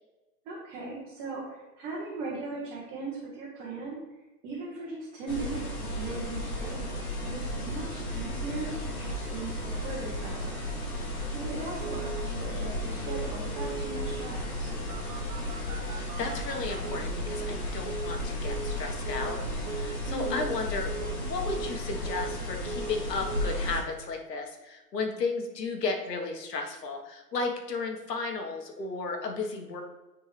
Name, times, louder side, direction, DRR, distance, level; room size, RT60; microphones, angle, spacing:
voice 1, 0.4-4.0 4.4-6.9 7.3-10.6 11.3-14.7 20.1-20.5, right 3 dB, 15° right, -5 dB, 0.9 m, -38 dB
sound 1, 5.3-23.8, left 1 dB, 60° left, 1.9 m, -34 dB
Telephone, 8.1-8.2 8.5-8.6 8.9-9.0 9.2-9.7 9.9-10.0 10.3-10.6 11.0-11.1 11.6-12.3 13.1-13.3 13.6-14.3 14.9-17.6 17.9-18.2 18.5-18.8 19.1-19.4 19.7-20.0 20.3-20.6 20.9-21.2 21.5-22.4 22.7-23.0 23.3-23.5, right 6 dB, 60° right, 1.0 m, -40 dB
sound 2, 12.9-20.3, left 1 dB, 15° left, 1.2 m, -56 dB
voice 2, 15.5-19.4 19.7-29.8, left 3 dB, 80° left, 3 dB, 1.5 m, -34 dB
9.7 x 3.8 x 3.3 m, 1.1 s
hypercardioid pair, 150°, 48 cm